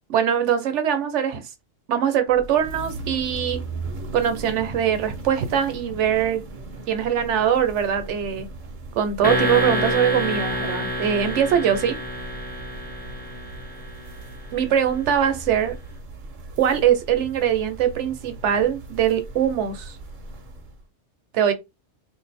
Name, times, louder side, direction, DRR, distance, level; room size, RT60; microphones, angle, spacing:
voice 1, 0.1-1.4 1.9-3.6 4.1-6.4 6.9-8.5 9.0-12.0 14.5-15.8 16.6-20.0 21.3-21.5, right 9 dB, 70° right, 1.0 m, -22 dB
sound 1, 2.3-20.8, right 2 dB, 50° right, 0.7 m, -38 dB
sound 2, 9.2-14.1, equal, 10° left, 0.6 m, -27 dB
2.5 x 2.5 x 4.1 m
omnidirectional pair, 1.3 m